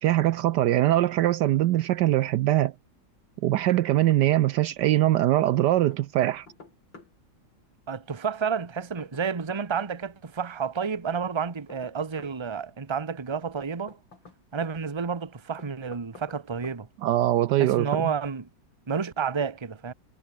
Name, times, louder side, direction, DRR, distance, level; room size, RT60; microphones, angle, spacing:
voice 1, 0.0-2.7 3.4-6.5 17.0-18.1, right 14 dB, 70° right, 1.1 m, -22 dB
Knock, 3.5-4.3 4.6-4.7 5.9-7.1 8.4-9.7 11.1-12.4 13.6-14.8 15.6-16.4 16.6-16.8, left 3 dB, 80° left, 5.1 m, -50 dB
voice 2, 7.9-14.0 14.5-16.9 17.6-18.5 18.9-19.9, right 6 dB, 20° right, 0.9 m, -30 dB
omnidirectional pair, 2.0 m